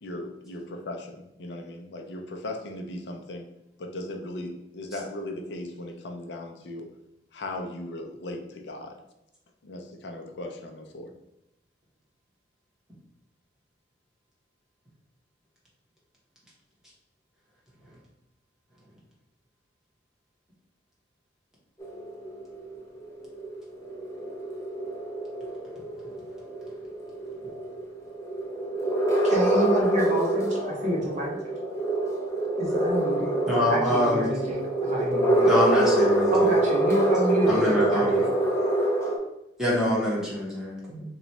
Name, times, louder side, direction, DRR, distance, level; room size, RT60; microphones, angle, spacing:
voice 1, 0.0-3.5 3.8-6.9 7.3-9.0 9.6-11.1, left 1 dB, 75° left, 3 dB, 0.5 m, -37 dB
sound 1, 21.8-39.2, right 2 dB, 15° left, 0.6 m, -26 dB
voice 2, 29.2-31.4 32.6-35.5 36.3-38.3, equal, 40° right, -3 dB, 0.9 m, -28 dB
voice 3, 33.5-34.2 35.4-36.5 37.5-38.3 39.6-41.0, left 1 dB, 5° right, -6 dB, 1.1 m, -25 dB
2.9 x 2.3 x 4.0 m, 0.87 s
head